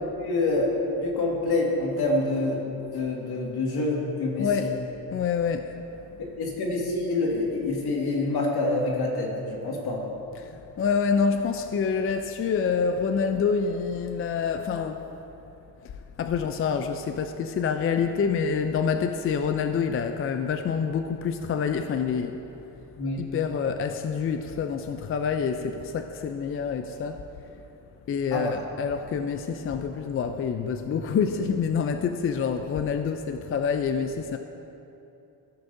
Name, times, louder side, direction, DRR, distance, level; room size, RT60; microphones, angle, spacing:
voice 1, 0.2-0.7 1.0-2.6 2.9-4.7 6.4-10.0 23.0-23.2 28.3-28.5, left 2 dB, 65° left, -2 dB, 2.0 m, -26 dB
voice 2, 4.4-4.8 5.1-5.8 10.4-15.1 15.8-15.9 16.2-22.4 23.2-27.2 28.1-34.4, left 6 dB, 35° left, 7 dB, 0.4 m, -27 dB
15.0 x 7.0 x 2.6 m, 3.0 s
cardioid pair, 90°, 40 cm